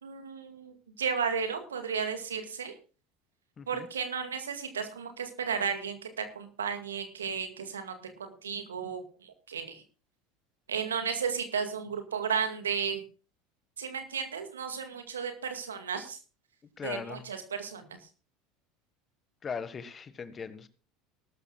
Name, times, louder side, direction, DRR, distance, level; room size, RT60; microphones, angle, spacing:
voice 1, 0.0-2.7 3.7-9.8 10.7-13.0 13.8-16.2 16.8-17.9, right 6 dB, 80° right, 7 dB, 2.0 m, -34 dB
voice 2, 3.6-3.9 16.8-17.2 19.4-20.7, left 6 dB, 30° left, 13 dB, 1.5 m, -39 dB
19.5 x 12.5 x 2.4 m, 0.36 s
figure-of-eight pair, 70°, 0 cm